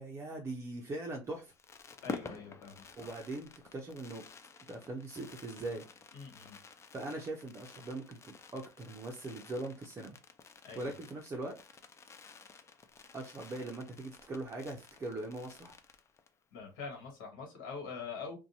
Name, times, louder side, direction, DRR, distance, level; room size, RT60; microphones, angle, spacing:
voice 1, 0.0-1.5 3.0-4.2 4.7-5.8 6.9-10.2 10.7-11.6 13.1-15.8, right 2 dB, 25° right, 0.5 m, -41 dB
Fireworks, 1.2-16.4 16.7-16.8 17.0-17.3, left 4 dB, 25° left, 0.4 m, -50 dB
voice 2, 2.0-2.8 6.1-6.6 10.6-10.9 16.5-18.4, left 5 dB, 80° left, 1.2 m, -44 dB
2.6 x 2.2 x 2.7 m
supercardioid pair, 90°, 11 cm